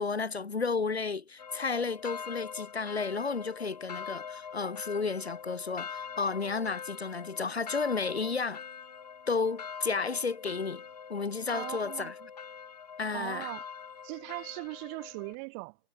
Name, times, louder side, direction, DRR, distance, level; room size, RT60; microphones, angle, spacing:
voice 1, 0.0-8.6 9.3-10.8 11.1-12.1 13.0-13.5, left 4 dB, 75° left, 3.0 m, -32 dB
sound 1, 1.4-15.4, left 6 dB, 40° left, 2.3 m, -43 dB
voice 2, 11.5-12.1 13.1-13.6 14.0-15.8, right 40 dB or more, 10° right, 2.1 m, -39 dB
hypercardioid pair, 170°, 32 cm